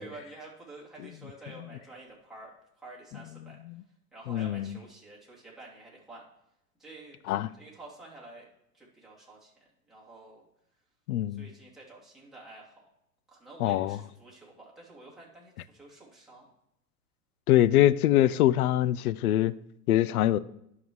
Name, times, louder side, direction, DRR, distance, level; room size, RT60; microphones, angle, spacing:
voice 1, 0.0-3.6 4.1-6.2 6.8-7.2 7.6-8.5 8.7-9.5 9.9-10.4 11.3-12.9 13.3-16.5, right 2 dB, ahead, 2.9 m, -49 dB
voice 2, 4.3-4.8 7.3-7.5 11.1-11.4 13.6-14.0 17.5-19.5 19.9-20.4, left 13 dB, 70° left, 0.5 m, -23 dB
11.0 x 5.7 x 3.1 m
hypercardioid pair, 100°, 47 cm